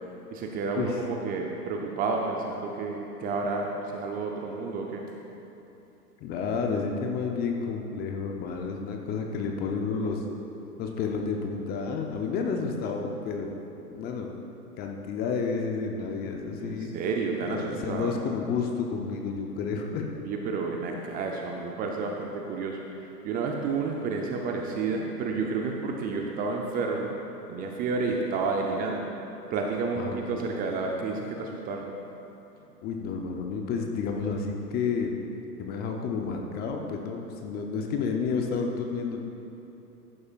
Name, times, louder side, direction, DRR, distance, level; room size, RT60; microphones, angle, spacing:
voice 1, 0.3-5.0 16.6-18.2 20.2-22.8 23.2-27.1 27.5-29.1 29.5-31.9, right 4 dB, 20° right, 1 dB, 0.6 m, -30 dB
voice 2, 6.2-10.2 10.8-13.5 13.9-14.3 14.8-16.9 17.4-20.1 30.0-30.5 32.8-35.1 35.6-39.2, left 5 dB, 20° left, 2 dB, 0.6 m, -30 dB
14.5 x 11.0 x 2.5 m, 2.9 s
hypercardioid pair, 115°, 47 cm